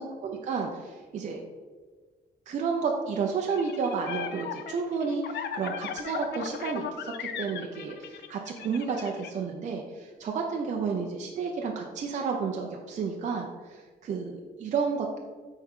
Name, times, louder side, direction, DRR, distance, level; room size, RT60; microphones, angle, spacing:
voice 1, 0.0-1.4 2.5-15.2, right 5 dB, 45° right, 1 dB, 0.6 m, -31 dB
sound 1, 3.5-9.3, left 8 dB, 90° left, 0.6 m, -37 dB
8.3 x 4.5 x 3.6 m, 1.5 s
wide cardioid pair, 170°, 17 cm